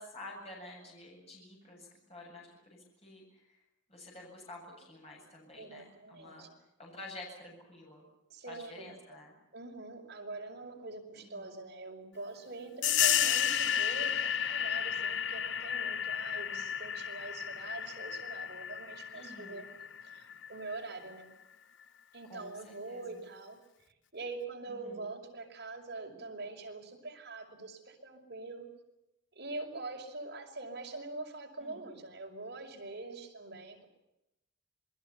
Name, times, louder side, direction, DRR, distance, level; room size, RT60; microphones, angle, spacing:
voice 1, 0.0-3.6 3.9-6.5 6.8-8.0 8.5-9.4 11.1-11.5 19.1-19.6 22.3-23.2 24.7-25.1 31.6-31.8, left 2 dB, 30° left, -2 dB, 7.8 m, -50 dB
voice 2, 5.6-6.5 8.3-9.2 9.5-19.7 20.0-21.3 22.1-23.6 24.1-28.7 29.3-33.9, right 3 dB, 55° right, 1 dB, 5.9 m, -44 dB
sound 1, 12.8-21.1, left 9 dB, 65° left, 1.0 m, -32 dB
27.0 x 21.0 x 7.1 m, 0.90 s
head